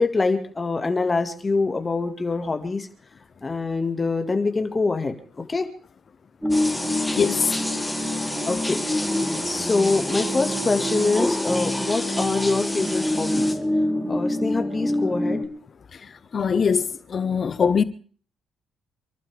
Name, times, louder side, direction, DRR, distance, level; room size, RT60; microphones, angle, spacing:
voice 1, 0.0-2.9 3.4-5.7 8.5-8.8 9.4-13.5 14.1-15.4, left 3 dB, 25° left, 2.1 m, -24 dB
sound 1, 6.4-15.4, left 1 dB, 10° right, 3.1 m, -27 dB
sound 2, 6.5-13.5, left 1 dB, 10° left, 2.6 m, -30 dB
voice 2, 16.3-17.8, left 6 dB, 45° left, 1.3 m, -21 dB
29.0 x 11.5 x 3.6 m
cardioid pair, 90°, 0 cm